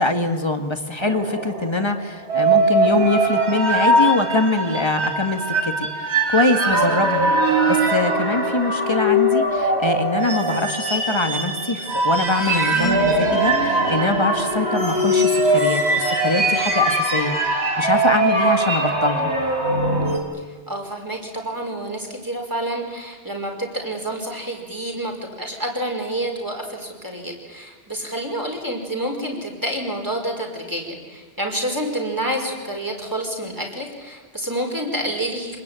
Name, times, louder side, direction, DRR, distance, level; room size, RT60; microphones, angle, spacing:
voice 1, 0.0-19.3, left 2 dB, 25° left, 6 dB, 2.1 m, -23 dB
sound 1, 1.0-20.2, right 1 dB, 90° right, 4.1 m, -21 dB
voice 2, 20.7-35.6, right 1 dB, 20° right, 1 dB, 5.3 m, -28 dB
27.5 x 20.5 x 9.2 m, 1.4 s
omnidirectional pair, 1.1 m